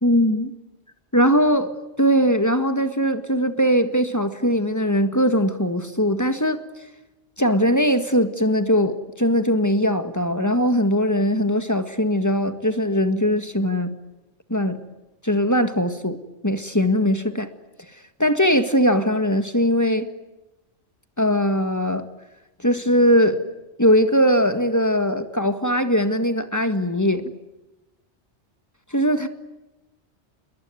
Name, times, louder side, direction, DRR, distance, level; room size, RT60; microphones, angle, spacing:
voice 1, 0.0-0.5 1.1-1.7 2.0-6.6 7.4-13.9 14.5-14.8 15.2-16.2 16.4-17.5 18.2-20.1 21.2-22.1 22.6-23.4 23.8-27.3 28.9-29.3, equal, 15° left, 1.8 m, -20 dB
28.5 x 22.0 x 9.3 m
omnidirectional pair, 1.2 m